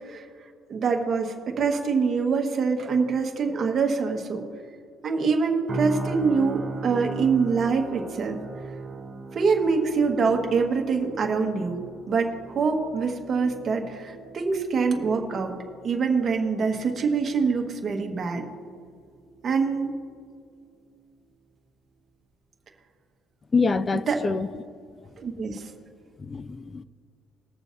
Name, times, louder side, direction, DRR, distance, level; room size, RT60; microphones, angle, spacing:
voice 1, 0.7-4.4 5.0-8.4 9.3-11.8 12.1-15.6 15.8-18.4 19.4-19.9 24.1-24.2 25.2-25.7, right 5 dB, 40° right, 2 dB, 1.6 m, -25 dB
sound 1, 5.7-19.7 20.0-20.2, right 3 dB, 25° right, 1.1 m, -39 dB
voice 2, 23.5-24.5 26.2-26.8, left 4 dB, 25° left, 15 dB, 0.4 m, -25 dB
21.0 x 7.1 x 2.7 m, 2.2 s
cardioid pair, 115°, 0 cm